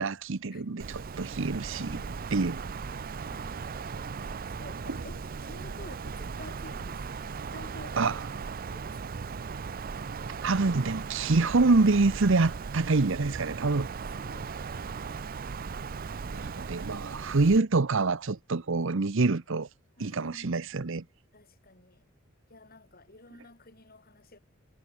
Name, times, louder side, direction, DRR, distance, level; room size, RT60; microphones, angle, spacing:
voice 1, 0.0-2.0 2.3-2.6 8.0-8.1 10.4-13.9 16.3-19.7 20.0-21.0, right 3 dB, 65° right, 0.8 m, -26 dB
Wind, 0.8-17.6, right 5 dB, 45° right, 0.5 m, -38 dB
voice 2, 1.8-2.6 3.3-9.2 13.4-13.6 14.2-15.0 16.4-17.3 20.0-20.8 21.3-22.1 22.5-24.4, left 2 dB, 45° left, 6.7 m, -52 dB
head